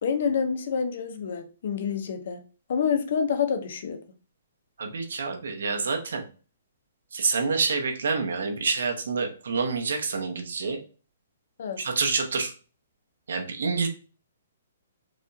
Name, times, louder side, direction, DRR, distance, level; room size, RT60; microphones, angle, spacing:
voice 1, 0.0-2.4 2.7-4.0 11.6-11.8, left 6 dB, 45° left, 7 dB, 0.6 m, -27 dB
voice 2, 4.8-6.2 7.1-10.8 11.8-12.5 13.3-13.9, right 4 dB, 75° right, 3 dB, 0.9 m, -27 dB
4.9 x 2.4 x 2.7 m, 0.36 s
hypercardioid pair, 180°, 0 cm